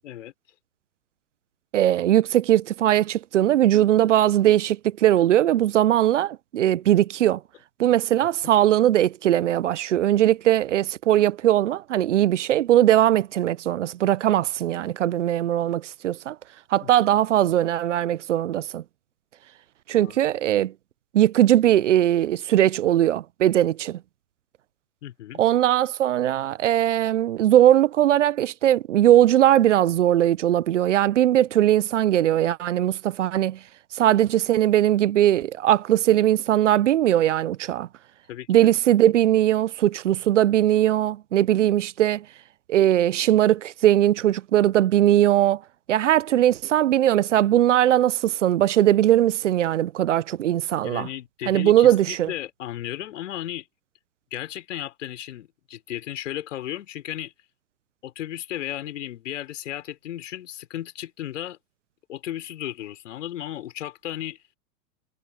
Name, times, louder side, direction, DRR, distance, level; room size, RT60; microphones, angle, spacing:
voice 1, 1.7-7.4 7.8-16.4 16.7-18.8 19.9-20.7 21.1-24.0 25.4-33.6 33.9-37.9 38.5-42.2 42.7-45.6 45.9-51.1 51.5-52.3, right 12 dB, 55° right, 1.0 m, -20 dB
voice 2, 25.0-25.4 38.3-38.5 50.8-53.7 54.3-57.3 58.0-61.6 62.1-64.4, left 12 dB, 55° left, 5.4 m, -34 dB
figure-of-eight pair, 100°, 44 cm